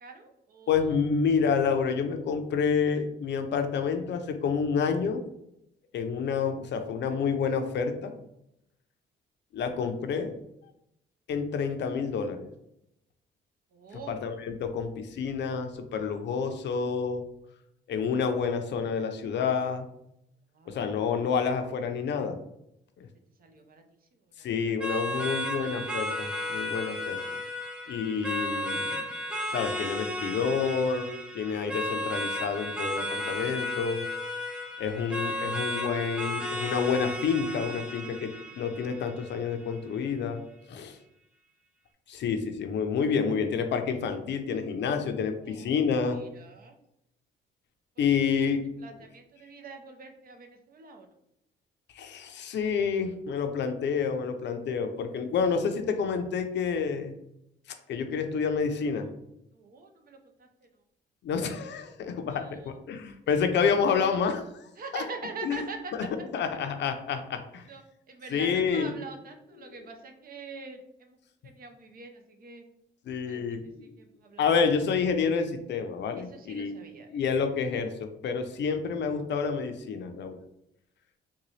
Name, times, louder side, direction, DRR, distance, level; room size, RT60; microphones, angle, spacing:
voice 1, 0.0-0.9 13.7-14.2 20.5-20.9 23.4-23.8 24.4-24.7 25.0-25.3 25.7-25.8 45.5-45.8 46.1-46.8 48.8-51.1 59.5-60.5 62.3-62.8 64.8-65.9 67.7-67.8 68.1-71.2 71.4-72.7 73.3-74.5 76.2-77.1, right 4 dB, 50° right, 5 dB, 0.6 m, -44 dB
voice 2, 0.7-5.2 5.9-8.1 9.5-10.3 11.3-12.5 14.1-17.2 17.9-19.9 20.7-22.4 23.0-23.1 24.4-27.2 27.9-29.1 29.5-34.1 34.8-40.4 40.7-41.0 42.1-46.2 48.0-48.6 48.9-49.0 51.9-57.1 57.9-59.1 61.2-65.0 65.4-66.1 66.3-67.6 68.3-68.9 73.1-73.9 74.4-76.8 77.1-80.4, left 6 dB, 65° left, 7 dB, 0.5 m, -29 dB
sound 1, 24.8-39.8, left 1 dB, 5° right, 0.5 m, -34 dB
3.9 x 2.2 x 3.1 m, 0.81 s
cardioid pair, 90°, 20 cm